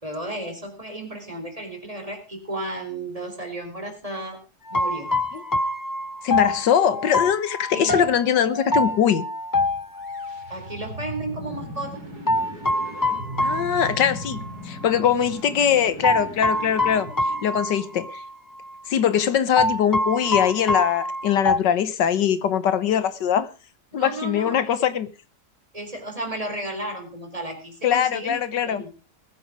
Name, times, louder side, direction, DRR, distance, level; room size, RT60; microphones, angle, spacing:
voice 1, 0.0-4.4 4.7-5.1 7.7-8.0 10.5-12.0 24.0-24.7 25.7-28.9, right 1 dB, 20° right, 4.4 m, -33 dB
sound 1, 4.7-10.5 12.3-14.5 14.8-14.9 16.0-18.3 18.6-18.7 19.6-21.6, left 1 dB, 30° left, 0.3 m, -25 dB
voice 2, 6.2-9.3 13.4-17.1 17.4-18.2 18.9-23.5 23.9-25.1 27.8-28.8, left 9 dB, 80° left, 1.7 m, -22 dB
sound 2, 9.9-18.1, equal, 60° right, 4.6 m, -38 dB
20.5 x 9.5 x 5.1 m
omnidirectional pair, 1.9 m